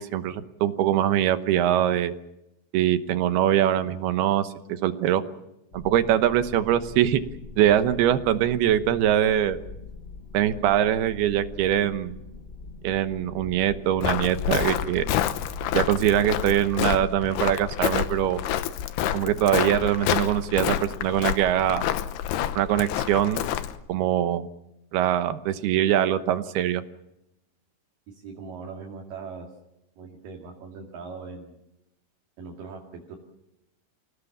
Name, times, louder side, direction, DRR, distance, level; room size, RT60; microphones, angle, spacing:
voice 1, 0.0-2.1 2.7-5.2 5.7-7.2 7.6-9.6 10.3-12.2 12.8-15.0 15.7-18.4 19.1-21.9 22.6-23.4 23.9-24.5 24.9-26.8, right 11 dB, 80° right, 10 dB, 3.1 m, -23 dB
sound 1, 5.7-19.0, left 3 dB, 40° left, 0.8 m, -43 dB
Walk footsteps, 14.0-23.8, left 11 dB, 85° left, 3.0 m, -28 dB
voice 2, 28.1-29.5 30.0-31.6 32.4-33.2, right 4 dB, 60° right, 0 dB, 3.9 m, -40 dB
28.0 x 17.5 x 7.3 m, 0.88 s
omnidirectional pair, 4.5 m